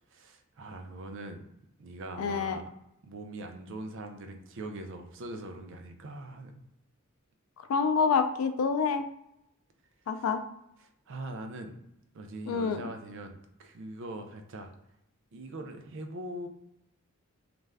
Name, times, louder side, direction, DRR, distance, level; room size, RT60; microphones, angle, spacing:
voice 1, 0.1-1.4 1.8-2.7 3.0-6.7 10.1-10.3 11.1-11.8 12.1-14.7 15.3-16.5, right 1 dB, 65° right, 5 dB, 0.4 m, -42 dB
voice 2, 2.2-2.6 7.7-9.1 10.1-10.4 12.5-12.8, left 5 dB, 85° left, 9 dB, 0.4 m, -27 dB
2.4 x 2.2 x 3.3 m, 0.80 s
head